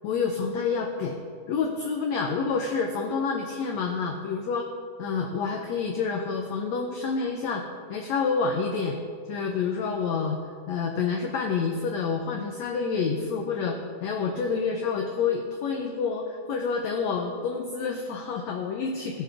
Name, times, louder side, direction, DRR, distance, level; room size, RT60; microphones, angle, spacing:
voice 1, 0.0-1.2 1.5-4.7 5.0-7.6 7.9-9.0 9.3-10.4 10.7-19.2, left 5 dB, 80° left, 2 dB, 1.6 m, -28 dB
19.5 x 7.5 x 3.5 m, 2.1 s
omnidirectional pair, 4.1 m